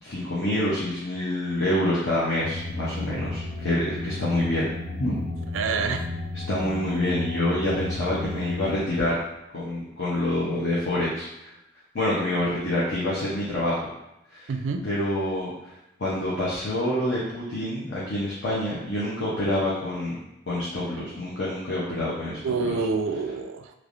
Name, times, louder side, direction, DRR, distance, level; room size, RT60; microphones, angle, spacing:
voice 1, 0.0-4.7 5.0-5.1 6.5-9.2 9.5-11.5 11.9-13.8 14.3-14.5 14.8-15.7 16.0-20.2 20.5-22.8, left 1 dB, 70° left, -7 dB, 0.8 m, -27 dB
sound 1, 2.4-8.8, left 2 dB, 45° left, 0.4 m, -33 dB
voice 2, 5.5-6.1 14.5-14.9 22.4-23.7, right 4 dB, 80° right, 7 dB, 0.3 m, -27 dB
3.3 x 3.1 x 2.5 m, 0.91 s
head